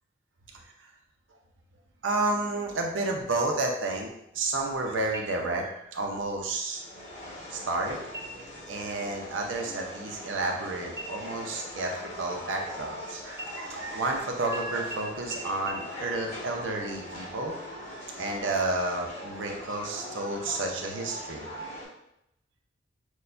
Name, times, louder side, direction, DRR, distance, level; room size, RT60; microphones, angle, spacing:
voice 1, 2.0-4.1 4.3-6.8 7.5-8.0 8.7-11.9 12.2-17.5 18.2-21.5, right 2 dB, 85° right, 1 dB, 0.7 m, -31 dB
sound 1, 5.1-5.8 6.2-6.3 6.8-7.4 8.1-8.6 9.0-9.2 9.5-10.6 11.0-13.0 13.3-14.1 14.5-14.6 14.9-15.0 15.3-15.4 15.7-15.8, right 1 dB, 15° right, 0.6 m, -44 dB
sound 2, 6.7-21.9, left 1 dB, 35° left, 1.4 m, -42 dB
6.3 x 2.3 x 2.6 m, 0.80 s
head